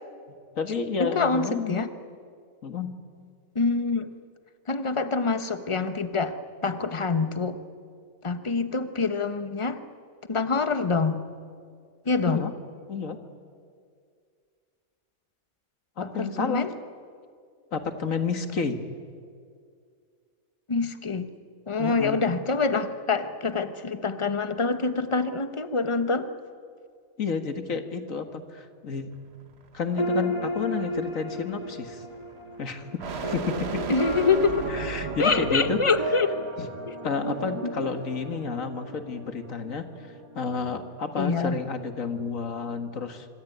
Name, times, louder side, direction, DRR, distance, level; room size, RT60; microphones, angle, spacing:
voice 1, 0.3-1.8 2.6-2.9 12.3-12.5 12.9-13.2 16.0-16.6 17.7-18.8 21.8-22.2 27.2-29.1 29.7-32.0 32.6-32.9 33.2-33.8 34.7-35.8 36.6-36.7 37.0-40.1 40.3-43.3, left 5 dB, 70° left, 8 dB, 2.1 m, -30 dB
voice 2, 1.0-1.9 3.5-4.1 4.7-6.4 6.6-7.6 8.2-9.8 10.3-11.3 12.1-12.4 16.0-16.7 20.7-21.3 21.7-26.3 33.9-34.7 35.2-36.3 36.9-37.0 37.6-37.7 41.2-41.6, left 4 dB, 25° left, 10 dB, 1.1 m, -25 dB
sound 1, 29.1-36.2, right 5 dB, 50° right, 1.4 m, -37 dB
sound 2, 29.9-41.0, equal, 20° right, 2.4 m, -34 dB
26.0 x 25.0 x 9.3 m, 2.2 s
omnidirectional pair, 1.5 m